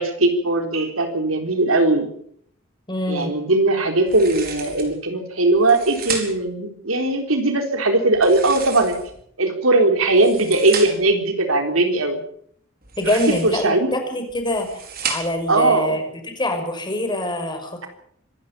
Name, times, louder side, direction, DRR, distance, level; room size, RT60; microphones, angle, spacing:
voice 1, 0.0-2.1 3.1-9.0 9.4-12.2 13.0-13.2 13.4-13.9 15.5-16.0, right 2 dB, 85° right, 5 dB, 3.9 m, -19 dB
voice 2, 2.9-3.3 13.0-14.7 15.1-17.9, left 1 dB, 20° left, 5 dB, 5.5 m, -24 dB
sound 1, 4.1-4.9 5.5-6.5 8.1-9.2 10.0-11.1 12.8-13.7 14.3-15.5, right 6 dB, 50° right, 4.6 m, -32 dB
26.0 x 12.5 x 8.6 m, 0.66 s
head